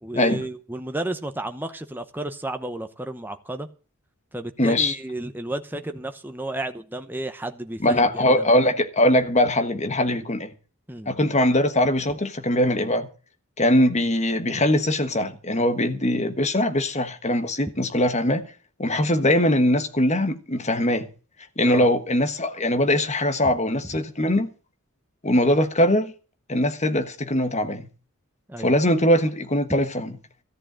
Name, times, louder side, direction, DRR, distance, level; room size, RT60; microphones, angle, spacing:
voice 1, 0.0-3.7 4.3-8.5 10.9-11.1 21.6-21.9 23.9-24.0 28.5-28.7, right 1 dB, 10° right, 0.9 m, -32 dB
voice 2, 4.6-4.9 7.8-10.5 11.1-13.1 13.6-18.4 18.8-21.1 21.6-24.5 25.2-26.1 26.5-27.9 28.6-30.1, left 1 dB, 30° left, 1.4 m, -21 dB
14.0 x 7.7 x 7.4 m
head